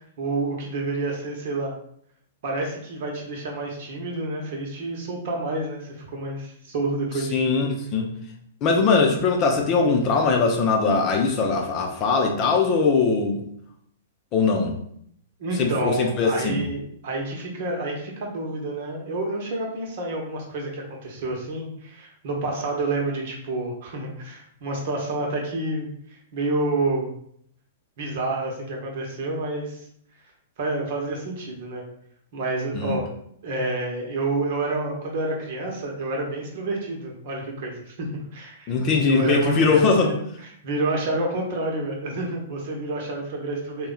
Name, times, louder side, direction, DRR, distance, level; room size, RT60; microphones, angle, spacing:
voice 1, 0.2-1.7 2.4-7.4 15.4-27.1 28.0-29.9 30.6-31.8 32.3-33.1 33.4-38.7 39.0-40.1 40.6-43.9, right 2 dB, 55° right, 0 dB, 1.0 m, -29 dB
voice 2, 7.3-8.1 8.6-13.4 14.3-14.8 15.6-16.6 32.7-32.9 38.7-40.1, left 4 dB, 35° left, 2 dB, 0.6 m, -21 dB
3.0 x 2.3 x 3.8 m, 0.68 s
hypercardioid pair, 115°, 0 cm